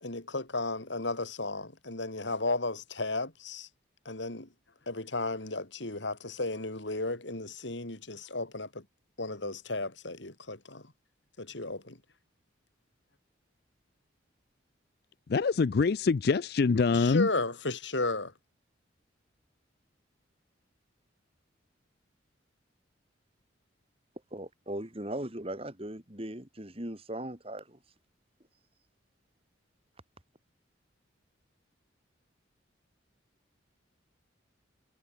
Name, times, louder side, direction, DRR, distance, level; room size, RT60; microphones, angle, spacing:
voice 1, 0.0-3.7 4.0-4.5 4.9-8.8 9.2-10.9 11.4-12.0 16.9-18.3, left 2 dB, 70° left, 3.4 m, -34 dB
voice 2, 15.3-17.3, left 4 dB, 55° left, 0.4 m, -25 dB
voice 3, 24.3-27.8, right 1 dB, 30° right, 2.8 m, -38 dB
head